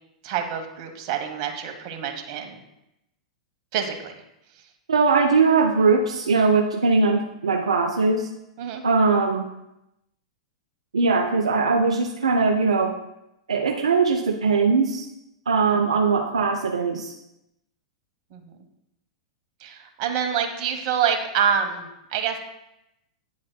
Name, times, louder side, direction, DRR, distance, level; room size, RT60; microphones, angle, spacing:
voice 1, 0.2-2.6 3.7-4.2 8.6-8.8 18.3-18.4 19.6-22.4, right 7 dB, 45° right, 5 dB, 1.1 m, -26 dB
voice 2, 4.9-8.3 8.8-9.4 10.9-12.9 13.5-15.1 15.5-17.1, right 4 dB, 80° right, 3 dB, 0.6 m, -20 dB
9.1 x 7.3 x 2.2 m, 0.86 s
hypercardioid pair, 105°, 3 cm